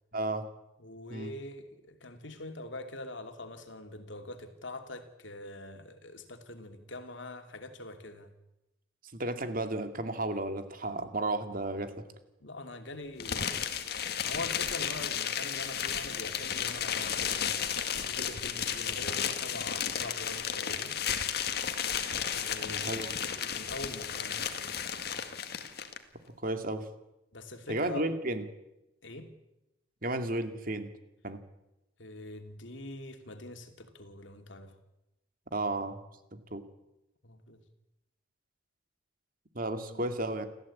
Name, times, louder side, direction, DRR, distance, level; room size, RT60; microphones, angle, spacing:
voice 1, 0.1-0.5 1.1-1.3 9.1-11.9 22.6-23.1 26.4-26.9 27.7-28.4 30.0-30.9 31.2-31.4 35.5-36.0 36.3-36.6 39.5-40.5, right 2 dB, 45° right, 2.4 m, -33 dB
voice 2, 0.8-8.3 12.4-13.6 14.2-17.7 18.1-21.0 22.3-22.9 23.5-24.6 27.3-28.1 29.0-29.4 32.0-34.8 37.2-37.6 39.8-40.0, left 2 dB, 70° left, 2.7 m, -44 dB
sound 1, 13.2-26.0, left 8 dB, 55° left, 2.0 m, -33 dB
29.0 x 14.5 x 8.6 m
head